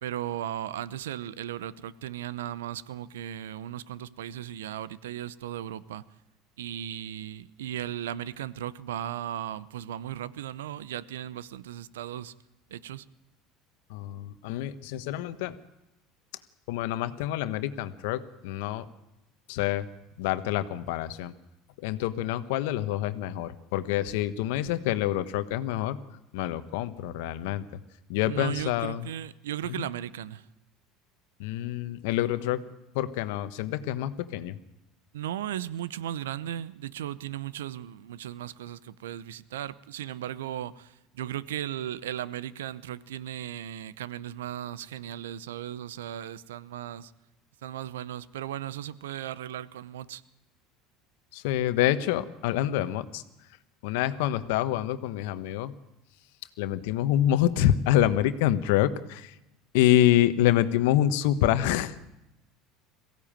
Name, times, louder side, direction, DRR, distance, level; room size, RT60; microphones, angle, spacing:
voice 1, 0.0-6.0 6.6-12.3 12.7-13.1 28.2-30.4 35.1-47.1 47.6-50.2, right 11 dB, 80° right, 19 dB, 0.8 m, -36 dB
voice 2, 13.9-15.5 16.7-18.9 19.5-19.9 20.2-21.3 21.8-26.0 26.3-27.6 28.1-29.0 29.7-29.9 31.4-32.6 32.9-34.6 51.3-53.2 53.8-55.7 56.6-59.3 59.7-61.9, left 12 dB, 70° left, 12 dB, 1.2 m, -26 dB
22.0 x 16.0 x 8.9 m, 0.95 s
hypercardioid pair, 75°, 0 cm